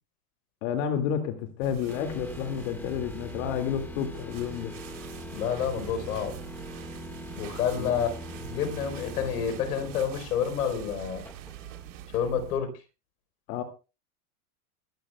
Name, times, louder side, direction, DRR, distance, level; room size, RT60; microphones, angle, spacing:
voice 1, 0.6-4.7 7.8-8.0 13.5-13.6, left 8 dB, 55° left, 2.4 m, -30 dB
sound 1, 1.6-12.6, right 11 dB, 55° right, 3.7 m, -44 dB
sound 2, 1.9-11.9, left 1 dB, 5° left, 1.7 m, -42 dB
voice 2, 5.3-6.4 7.4-11.2 12.1-12.7, left 8 dB, 80° left, 4.5 m, -29 dB
24.0 x 12.0 x 2.4 m
supercardioid pair, 140°, 45 cm